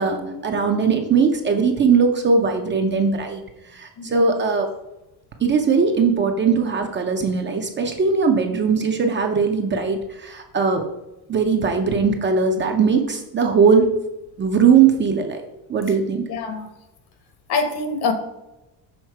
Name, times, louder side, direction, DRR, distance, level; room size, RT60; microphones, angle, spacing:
voice 1, 0.0-3.4 3.7-4.7 5.4-10.8 11.3-13.9 14.4-15.4 15.7-16.2, right 5 dB, 25° right, 3 dB, 0.5 m, -19 dB
voice 2, 16.3-16.7 17.5-18.1, left 4 dB, 55° left, 7 dB, 1.2 m, -24 dB
6.5 x 3.6 x 4.5 m, 0.97 s
cardioid pair, 135°, 45 cm